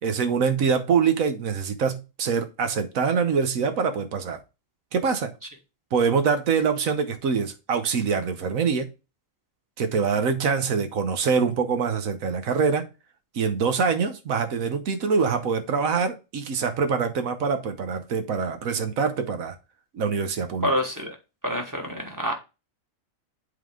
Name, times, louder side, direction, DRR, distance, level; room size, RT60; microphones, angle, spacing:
voice 1, 0.0-4.4 4.9-5.3 5.9-8.9 9.8-12.9 13.3-19.5 19.9-20.7, right 5 dB, 80° right, 1.3 m, -24 dB
voice 2, 20.6-21.1 21.4-22.3, equal, 15° right, 1.2 m, -27 dB
8.2 x 3.9 x 3.6 m
omnidirectional pair, 1.4 m